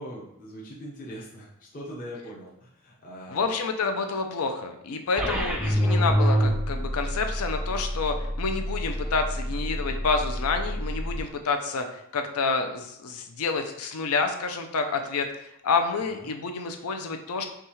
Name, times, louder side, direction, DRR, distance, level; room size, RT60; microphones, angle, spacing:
voice 1, 0.0-3.5 5.3-5.7 16.1-16.3, equal, 40° left, -5 dB, 0.7 m, -41 dB
voice 2, 3.3-15.3 15.6-17.5, left 4 dB, 80° left, 6 dB, 0.5 m, -28 dB
sound 1, 5.2-11.2, equal, 5° right, 0.3 m, -27 dB
5.8 x 2.4 x 3.1 m, 0.80 s
head